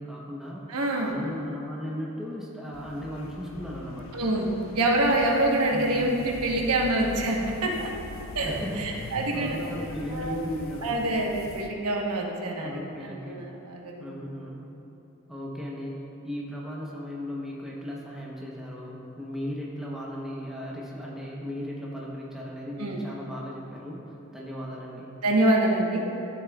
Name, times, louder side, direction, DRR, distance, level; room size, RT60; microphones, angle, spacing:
voice 1, 0.0-0.7 1.0-4.2 5.6-6.0 8.4-11.0 12.6-13.4 14.0-14.7 15.3-25.1, equal, ahead, -4 dB, 0.8 m, -36 dB
voice 2, 0.7-1.1 4.1-8.1 8.3-9.6 10.1-10.4 10.8-14.0 22.8-23.0 25.2-26.0, right 1 dB, 85° right, -1 dB, 1.1 m, -26 dB
sound 1, 2.7-11.7, left 2 dB, 60° left, 0.5 m, -42 dB
12.5 x 7.3 x 2.3 m, 3.0 s
head